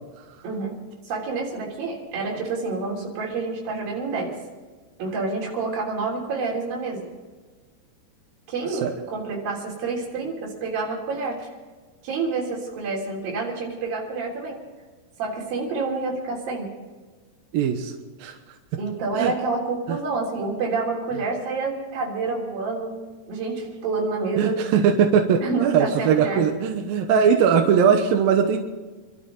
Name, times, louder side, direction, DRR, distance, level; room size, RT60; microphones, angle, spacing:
voice 1, 0.4-0.8 1.1-4.4 5.0-7.1 8.5-11.5 12.0-14.6 15.2-16.7 18.8-22.9 23.3-24.6 25.4-26.4, right 3 dB, 55° right, -2 dB, 5.1 m, -28 dB
voice 2, 17.5-17.9 18.2-18.4 19.1-19.3 19.9-20.0 24.4-28.6, right 7 dB, 70° right, 4 dB, 2.3 m, -20 dB
27.5 x 12.5 x 4.0 m, 1.4 s
omnidirectional pair, 5.3 m